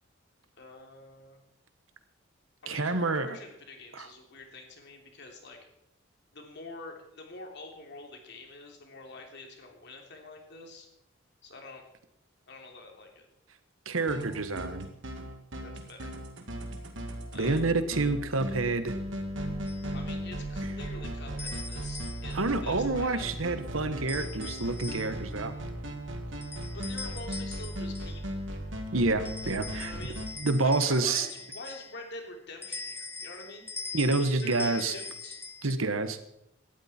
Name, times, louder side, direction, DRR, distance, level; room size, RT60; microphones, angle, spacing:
voice 1, 0.6-1.4 2.6-5.6 6.3-10.9 11.4-11.8 12.5-13.3 15.6-16.2 17.3-17.6 19.9-23.2 26.4-26.5 26.7-28.4 29.7-30.2 30.6-33.7 34.4-35.4, left 2 dB, 60° left, 2 dB, 3.1 m, -46 dB
voice 2, 2.7-3.3 3.9-4.1 13.8-14.9 17.3-18.9 22.3-25.5 28.9-29.9 30.4-31.3 33.9-34.9 35.6-36.2, right 3 dB, 85° right, 10 dB, 1.3 m, -28 dB
sound 1, 14.0-30.3, right 1 dB, 65° right, 2.3 m, -37 dB
sound 2, 19.7-19.9 21.4-22.5 24.1-25.3 26.4-28.2 29.2-32.1 32.6-35.7, left 4 dB, 10° left, 0.8 m, -42 dB
18.0 x 12.5 x 4.4 m, 0.80 s
head